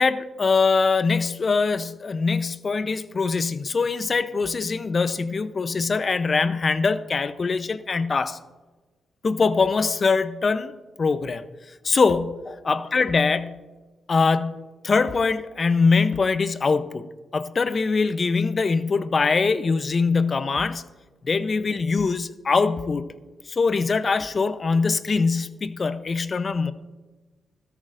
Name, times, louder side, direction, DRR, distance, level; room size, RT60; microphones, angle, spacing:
voice 1, 0.0-8.4 9.2-10.7 11.0-11.5 11.8-13.6 14.1-17.1 17.3-20.8 21.2-23.1 23.5-26.7, left 4 dB, 45° left, 13 dB, 0.7 m, -23 dB
13.5 x 12.5 x 2.6 m, 1.2 s
supercardioid pair, 50°, 0 cm